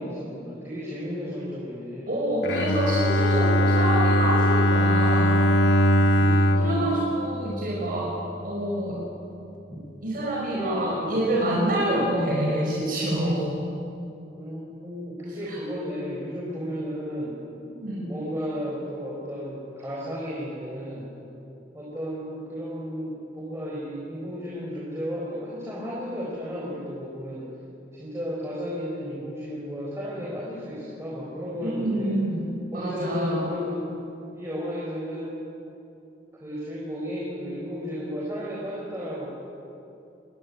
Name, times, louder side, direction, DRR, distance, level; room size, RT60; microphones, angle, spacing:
voice 1, 0.0-2.2 6.1-7.0 10.5-11.2 11.9-12.2 14.3-17.4 18.0-21.1 21.7-27.5 27.9-32.2 32.7-33.8 34.3-35.3 36.3-39.3, equal, 15° right, -5 dB, 4.6 m, -33 dB
voice 2, 2.1-5.4 6.5-8.1 8.4-9.0 10.0-13.4 15.5-15.6 17.8-18.1 31.6-33.5, right 1 dB, 50° right, -3 dB, 5.1 m, -27 dB
Bowed string instrument, 2.4-8.4, equal, 85° left, 1.3 m, -21 dB
24.0 x 20.0 x 9.8 m, 2.8 s
head